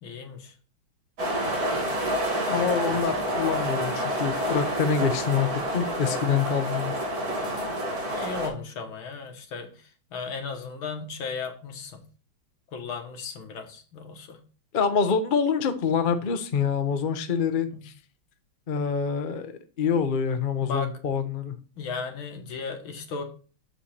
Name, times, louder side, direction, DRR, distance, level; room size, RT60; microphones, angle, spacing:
voice 1, 0.0-0.5 6.0-6.3 8.1-9.7 10.1-12.0 12.7-14.4 16.1-16.2 17.7-17.8 20.6-20.9 21.8-23.2, left 5 dB, 80° left, 4 dB, 2.2 m, -35 dB
sound 1, 1.2-8.5, equal, 45° right, 2.9 m, -28 dB
voice 2, 2.5-6.9 14.7-17.9 18.7-19.5 19.8-21.6, left 6 dB, 65° left, 8 dB, 0.5 m, -26 dB
6.9 x 5.6 x 4.3 m, 0.38 s
omnidirectional pair, 2.2 m